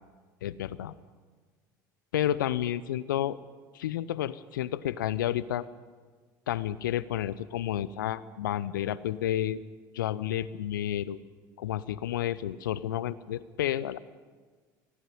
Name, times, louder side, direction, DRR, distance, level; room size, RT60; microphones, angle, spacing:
voice 1, 0.4-0.9 2.1-3.4 3.7-5.6 6.5-9.6 9.9-11.2 11.6-14.0, left 12 dB, 75° left, 18 dB, 0.7 m, -31 dB
18.5 x 16.5 x 9.6 m, 1.5 s
figure-of-eight pair, 65°, 11 cm